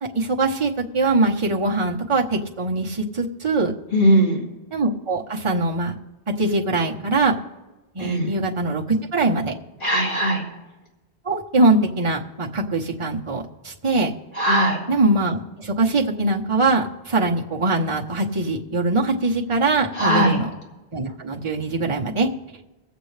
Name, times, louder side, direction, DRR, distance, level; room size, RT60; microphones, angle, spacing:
voice 1, 0.0-3.7 4.7-5.9 6.4-7.3 7.9-9.5 11.2-14.1 14.9-20.5 20.9-22.3, right 2 dB, 30° right, -1 dB, 1.0 m, -22 dB
voice 2, 3.9-4.4 8.0-8.3 9.8-10.4 14.4-14.8 20.0-20.4, right 1 dB, 55° left, -4 dB, 2.9 m, -19 dB
23.0 x 8.1 x 3.3 m, 1.1 s
omnidirectional pair, 1.1 m